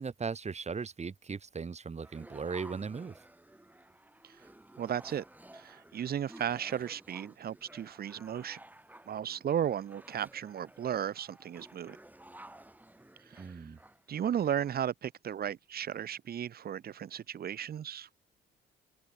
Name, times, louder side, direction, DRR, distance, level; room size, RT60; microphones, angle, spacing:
voice 1, 0.0-3.1 13.4-13.8, right 5 dB, 35° right, 2.9 m, -38 dB
sound 1, 2.0-14.8, right 1 dB, 10° right, 3.6 m, -54 dB
voice 2, 4.8-5.2 5.5-8.6 9.1-12.0 13.3-13.6 14.1-18.1, right 9 dB, 50° right, 0.9 m, -35 dB
open air
cardioid pair, 90°, 20 cm